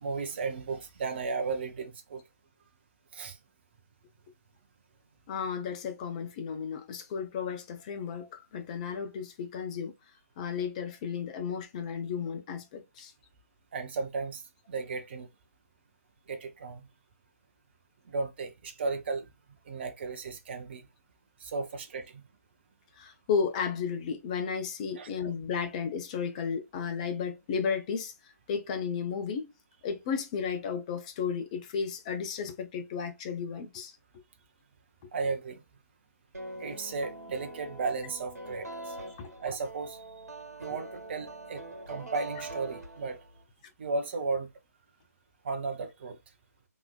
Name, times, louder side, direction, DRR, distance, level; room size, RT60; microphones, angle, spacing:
voice 1, 0.0-2.2 3.1-3.4 13.7-14.4 14.7-15.3 16.3-16.9 18.1-19.3 19.7-20.9 21.4-22.2 25.0-25.1 35.1-35.6 36.6-40.0 40.6-43.2 43.8-44.5 45.4-46.2, right 4 dB, 40° right, 0.7 m, -35 dB
voice 2, 5.3-9.9 10.4-13.1 23.0-28.1 28.5-29.5 29.8-33.9 39.2-39.3, left 6 dB, 25° left, 0.6 m, -33 dB
sound 1, 36.3-43.4, right 2 dB, 70° right, 1.4 m, -43 dB
3.5 x 3.0 x 2.4 m
figure-of-eight pair, 140°, 9 cm